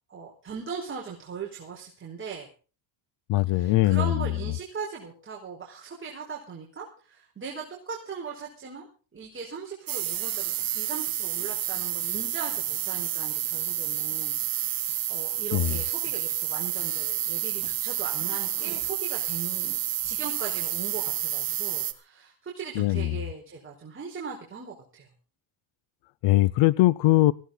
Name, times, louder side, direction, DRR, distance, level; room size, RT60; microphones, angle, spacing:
voice 1, 0.1-2.5 3.5-8.9 9.1-25.1, right 5 dB, 25° right, -1 dB, 4.6 m, -39 dB
voice 2, 3.3-4.3 15.5-15.8 22.8-23.2 26.2-27.3, left 17 dB, 60° left, 20 dB, 0.7 m, -21 dB
sound 1, 9.9-21.9, right 11 dB, 45° right, 1.9 m, -30 dB
19.5 x 16.0 x 3.9 m, 0.37 s
cardioid pair, 125°, 49 cm